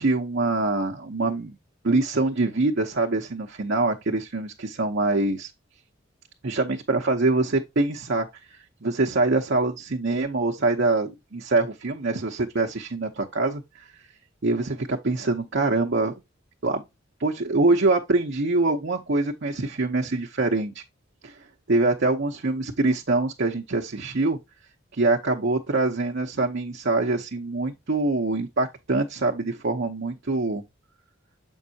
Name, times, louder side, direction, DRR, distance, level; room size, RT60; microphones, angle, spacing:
voice 1, 0.0-1.6 1.8-5.5 6.4-13.9 14.4-16.1 16.6-16.8 17.2-20.8 21.2-21.3 21.7-24.4 24.9-30.6, right 2 dB, 60° right, 0.8 m, -24 dB
7.2 x 5.3 x 2.8 m
head